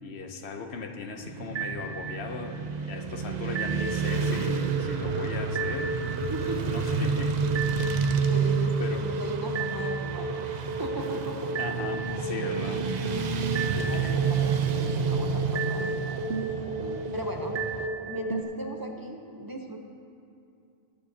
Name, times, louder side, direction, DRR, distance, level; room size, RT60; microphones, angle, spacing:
voice 1, 0.0-6.0 6.7-7.4 8.8-9.0 11.6-12.9 14.0-14.2 16.7-17.0, left 4 dB, 85° left, 5 dB, 1.1 m, -38 dB
Motorcycle / Traffic noise roadway noise, 1.2-17.9, right 6 dB, 50° right, 0.6 m, -30 dB
sound 1, 1.6-2.5 3.6-18.4, right 3 dB, 80° right, 1.0 m, -33 dB
voice 2, 6.2-6.6 8.0-10.4 10.8-11.5 13.7-16.3 17.1-17.6 18.0-19.8, equal, 25° right, 1 dB, 0.8 m, -37 dB
20.5 x 8.7 x 2.8 m, 2.5 s
omnidirectional pair, 1.0 m